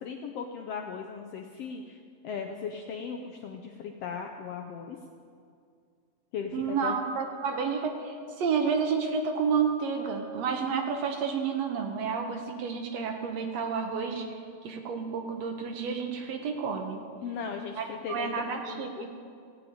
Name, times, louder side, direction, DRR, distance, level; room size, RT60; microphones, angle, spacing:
voice 1, 0.0-2.0 2.2-5.0 6.3-7.0 17.2-19.0, left 6 dB, 75° left, 3 dB, 1.4 m, -37 dB
voice 2, 6.5-14.3 14.6-17.0 17.8-19.1, right 6 dB, 65° right, 4 dB, 2.0 m, -30 dB
16.0 x 6.9 x 8.8 m, 2.3 s
omnidirectional pair, 3.5 m